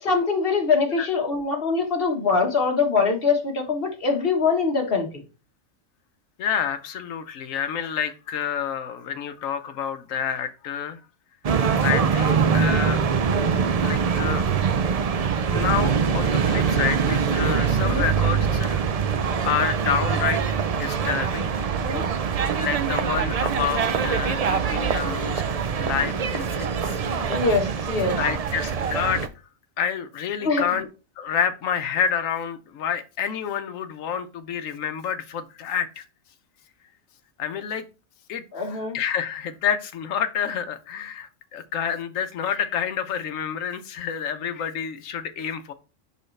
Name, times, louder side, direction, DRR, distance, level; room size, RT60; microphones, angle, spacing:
voice 1, 0.0-5.1 12.3-12.5 17.8-18.1 21.6-22.0 27.3-28.2 30.4-30.6 38.5-39.0, left 4 dB, 45° left, 3 dB, 1.5 m, -23 dB
voice 2, 6.4-11.0 11.8-13.0 13.8-14.4 15.2-18.8 19.5-20.4 20.7-21.5 22.6-25.4 25.8-27.0 28.2-29.3 29.8-30.9 31.2-36.0 37.4-37.8 38.3-38.4 38.7-45.7, left 8 dB, 75° left, 9 dB, 1.1 m, -28 dB
sound 1, 11.4-29.3, right 6 dB, 75° right, 0.3 m, -23 dB
6.7 x 5.6 x 3.2 m, 0.32 s
omnidirectional pair, 1.4 m